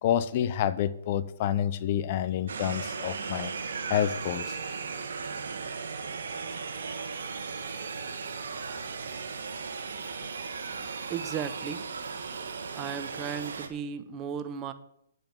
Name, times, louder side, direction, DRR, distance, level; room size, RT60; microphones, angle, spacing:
voice 1, 0.0-3.5 3.9-4.6, left 10 dB, 40° left, 0.4 m, -28 dB
sound 1, 2.5-13.7, right 5 dB, 60° right, 1.2 m, -36 dB
voice 2, 11.1-11.8 12.7-14.7, right 7 dB, 25° right, 0.7 m, -35 dB
9.0 x 5.3 x 7.5 m
figure-of-eight pair, 130°, 0 cm